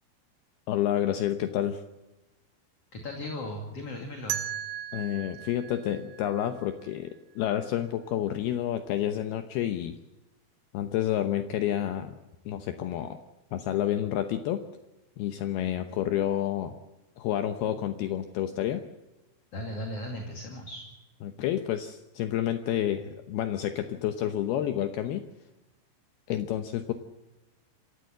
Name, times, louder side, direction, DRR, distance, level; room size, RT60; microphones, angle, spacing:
voice 1, 0.7-1.8 4.9-10.0 10.7-12.2 12.5-13.2 13.5-14.6 15.2-16.7 17.2-18.8 21.2-25.3 26.3-26.9, left 11 dB, 75° left, 8 dB, 2.8 m, -29 dB
voice 2, 2.9-4.4 19.5-20.8, left 1 dB, 40° left, 3 dB, 3.0 m, -37 dB
sound 1, 4.3-7.2, right 11 dB, 70° right, 1.9 m, -37 dB
27.0 x 15.5 x 7.8 m, 1.1 s
omnidirectional pair, 4.9 m